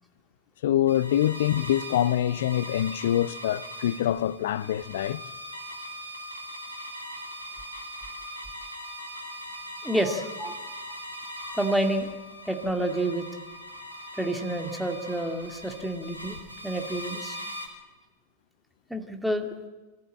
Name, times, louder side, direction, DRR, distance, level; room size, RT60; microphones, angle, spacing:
voice 1, 0.6-5.2, left 12 dB, 60° left, 0.7 m, -25 dB
sound 1, 0.9-17.7, equal, 85° left, 2.9 m, -40 dB
voice 2, 9.8-10.5 11.4-12.1 12.5-13.3 14.1-16.4 16.6-17.4 18.9-19.5, right 1 dB, ahead, 2.3 m, -29 dB
24.0 x 14.5 x 8.7 m
figure-of-eight pair, 90°, 0 cm